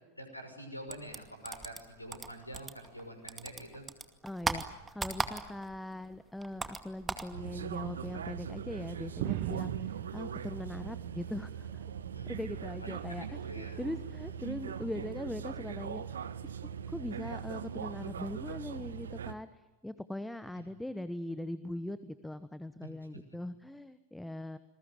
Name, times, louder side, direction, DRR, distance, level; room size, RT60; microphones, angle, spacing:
voice 1, 0.2-3.8 12.1-12.4 12.8-13.8 14.2-14.3 20.6-20.7, right 1 dB, 85° left, 7 dB, 6.1 m, -46 dB
sound 1, 0.9-3.0 3.3-5.8 6.0-7.3, right 4 dB, 15° right, 2.3 m, -37 dB
voice 2, 4.2-11.8 12.3-16.5 16.9-24.6, left 1 dB, 5° left, 13 dB, 1.1 m, -41 dB
sound 2, 7.3-19.3, right 8 dB, 65° right, 1.3 m, -41 dB
sound 3, 9.2-11.4 11.8-12.7 13.6-14.0 15.0-15.1, right 13 dB, 50° right, 1.5 m, -40 dB
28.0 x 21.5 x 9.3 m, 1.1 s
figure-of-eight pair, 90°, 0 cm